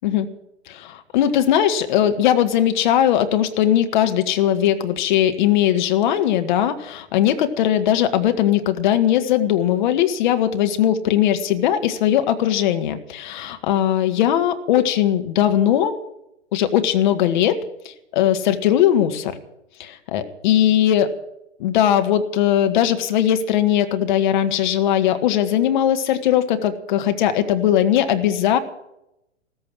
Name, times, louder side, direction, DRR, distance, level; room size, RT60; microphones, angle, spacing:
voice 1, 0.7-16.0 16.5-17.6 18.1-19.4 19.8-21.1 21.6-28.6, left 11 dB, 40° left, 8 dB, 1.7 m, -19 dB
15.0 x 14.0 x 6.2 m, 0.83 s
figure-of-eight pair, 110°, 35 cm